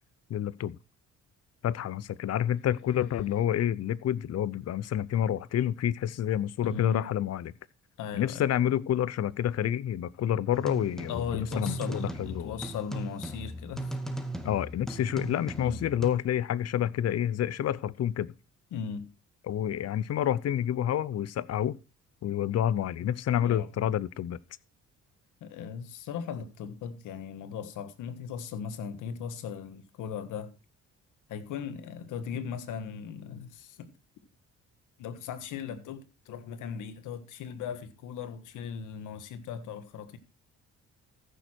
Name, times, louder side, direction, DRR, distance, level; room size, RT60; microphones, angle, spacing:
voice 1, 0.3-0.8 1.6-7.5 8.1-12.6 14.4-18.3 19.5-21.8 22.2-24.4, left 10 dB, 55° left, 0.7 m, -29 dB
voice 2, 6.6-7.0 8.0-8.4 11.1-14.0 15.6-15.8 18.7-19.1 23.4-23.7 25.4-30.5 31.3-33.9 35.0-40.2, left 7 dB, 85° left, 1.6 m, -38 dB
sound 1, 10.5-16.1, right 1 dB, ahead, 2.0 m, -37 dB
14.5 x 6.9 x 4.4 m
cardioid pair, 90°, 30 cm